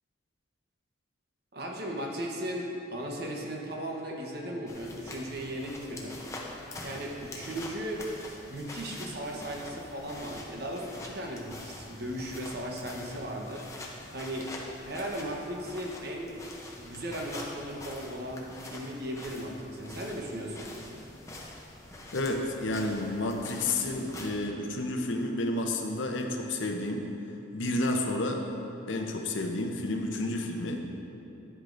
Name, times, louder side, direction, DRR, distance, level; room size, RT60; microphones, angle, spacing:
voice 1, 1.5-6.2 6.8-8.1 8.5-14.5 14.8-16.4 16.8-20.7, right 1 dB, 50° right, 0 dB, 0.9 m, -37 dB
sound 1, 4.7-24.3, left 2 dB, 15° left, 0.6 m, -45 dB
voice 2, 22.1-27.1 27.5-28.4 28.9-30.8, left 2 dB, 70° left, 3 dB, 0.7 m, -30 dB
9.9 x 8.0 x 2.6 m, 2.9 s
head